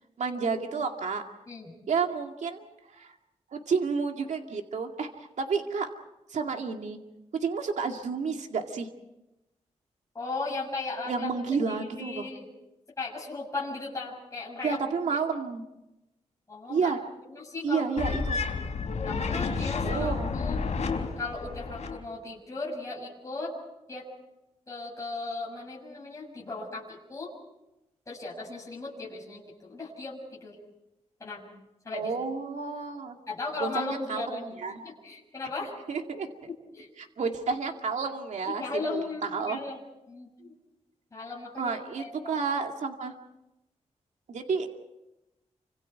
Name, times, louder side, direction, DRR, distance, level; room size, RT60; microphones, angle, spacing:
voice 1, 0.2-1.2 1.9-3.1 3.5-5.9 6.3-7.0 7.3-8.9 11.1-12.3 14.6-15.6 16.7-17.0 17.6-18.4 19.8-20.3 31.9-33.2 33.6-34.8 35.9-36.5 37.0-38.6 38.9-39.6 41.6-43.1 44.3-44.7, right 5 dB, 75° right, 4 dB, 2.2 m, -30 dB
voice 2, 10.1-12.5 13.0-14.8 16.5-16.9 17.3-17.8 19.0-20.6 21.2-23.5 23.9-24.1 24.7-27.3 28.0-30.5 31.2-31.4 31.8-32.1 33.3-34.6 34.8-35.7 36.5-36.9 37.2-37.3 38.4-39.8 40.1-40.5 41.1-42.3, left 3 dB, 25° left, -4 dB, 7.0 m, -37 dB
sound 1, 18.0-22.0, left 4 dB, 65° left, 4.3 m, -30 dB
29.5 x 26.0 x 4.7 m, 0.93 s
wide cardioid pair, 125°, 12 cm